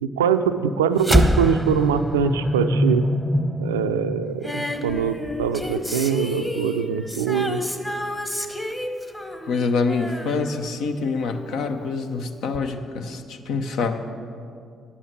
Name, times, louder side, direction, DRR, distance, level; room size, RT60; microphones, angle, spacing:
voice 1, 0.0-3.1 3.6-7.6, right 7 dB, 85° right, 10 dB, 0.4 m, -23 dB
sound 1, 1.0-5.6, equal, ahead, 0.9 m, -23 dB
Female singing, 4.4-11.4 12.5-12.6, left 1 dB, 15° left, 1.2 m, -31 dB
voice 2, 9.4-14.0, left 4 dB, 65° left, 6 dB, 0.8 m, -26 dB
11.0 x 8.5 x 6.0 m, 2.4 s
hypercardioid pair, 45°, 0 cm